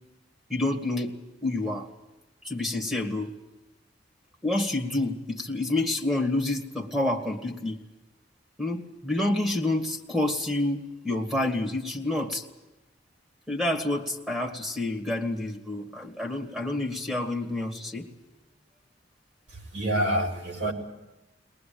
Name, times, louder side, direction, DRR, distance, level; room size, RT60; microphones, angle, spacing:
voice 1, 0.5-1.2 1.4-1.9 2.4-3.3 4.4-7.8 8.6-12.5 13.5-18.1, left 2 dB, 5° right, 1 dB, 2.1 m, -28 dB
voice 2, 19.7-20.7, right 1 dB, 70° right, 0 dB, 5.5 m, -26 dB
22.5 x 20.0 x 8.8 m, 1.0 s
head